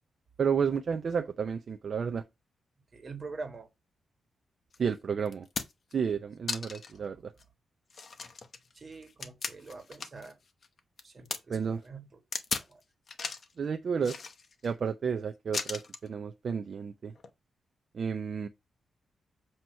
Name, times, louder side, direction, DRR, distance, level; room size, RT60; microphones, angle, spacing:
voice 1, 0.4-2.2 4.8-5.5 5.9-7.2 11.5-11.8 13.6-14.2 14.6-17.1 17.9-18.5, right 6 dB, 55° right, 0.5 m, -31 dB
voice 2, 2.9-3.7 6.9-7.0 8.7-10.4 11.0-12.2 12.6-12.8, right 3 dB, 35° right, 1.5 m, -45 dB
sound 1, 4.7-4.8 5.3-5.9 6.5-7.0 7.4-7.5 7.9-10.3 10.6-11.4 12.3-12.7 13.1-13.5 14.0-14.7 15.5-16.1 17.1-17.3, left 4 dB, 45° left, 0.9 m, -37 dB
7.7 x 2.9 x 5.4 m
wide cardioid pair, 120°, 0 cm